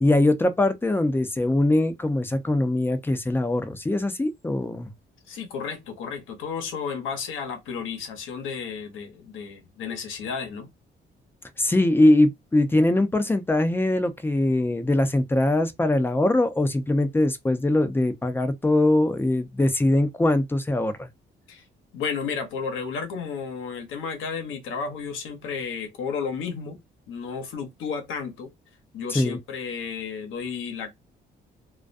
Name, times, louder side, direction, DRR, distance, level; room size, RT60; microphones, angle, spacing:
voice 1, 0.0-4.9 11.6-21.1 29.1-29.4, left 1 dB, 10° left, 0.5 m, -22 dB
voice 2, 5.3-10.7 21.5-21.6 21.9-26.8 27.1-28.5 28.9-30.9, left 6 dB, 85° left, 0.9 m, -32 dB
2.4 x 2.2 x 2.5 m
cardioid pair, 90°, 20 cm